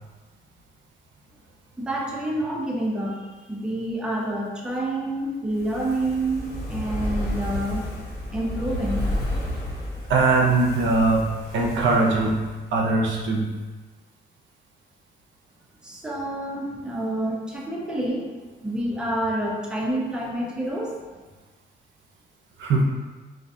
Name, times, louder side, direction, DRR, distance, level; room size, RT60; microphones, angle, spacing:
voice 1, 1.8-7.8 8.3-9.0 15.8-21.0, right 1 dB, 5° right, -2 dB, 0.4 m, -28 dB
Fire, 5.5-12.8 13.1-13.2, left 1 dB, 55° left, 1.0 m, -31 dB
voice 2, 10.1-13.6 22.6-22.8, right 3 dB, 70° right, -1 dB, 0.5 m, -21 dB
2.5 x 2.2 x 2.6 m, 1.3 s
cardioid pair, 90°, 20 cm